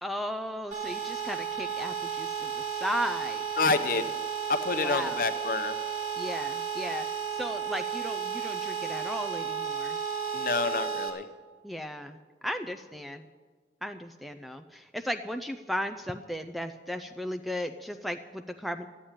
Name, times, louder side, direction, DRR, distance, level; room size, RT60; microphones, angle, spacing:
voice 1, 0.0-3.4 4.8-5.2 6.2-7.1 7.4-10.0 11.6-12.2 12.4-13.3 13.8-18.9, equal, ahead, 7 dB, 0.4 m, -35 dB
sound 1, 0.7-11.1, right 7 dB, 40° right, 2.5 m, -33 dB
voice 2, 3.6-4.1 4.5-5.8 10.3-11.3, left 3 dB, 50° left, 9 dB, 0.8 m, -28 dB
13.0 x 8.6 x 9.0 m, 1.5 s
head